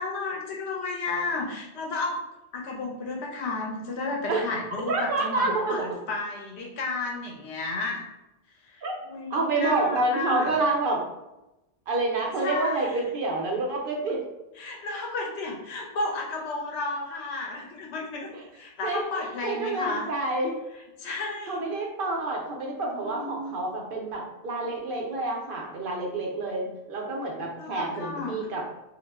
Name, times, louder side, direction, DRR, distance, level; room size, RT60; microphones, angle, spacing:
voice 1, 0.0-2.2 2.5-8.0 8.7-10.5 12.4-13.0 14.6-20.1 21.0-21.6 23.0-23.6 27.6-28.4, left 3 dB, 80° left, 0 dB, 0.9 m, -32 dB
voice 2, 4.9-5.8 8.8-9.0 9.3-11.0 11.9-14.2 18.8-20.6 21.5-28.6, right 2 dB, 60° right, -1 dB, 0.7 m, -28 dB
2.3 x 2.1 x 3.3 m, 0.96 s
omnidirectional pair, 1.1 m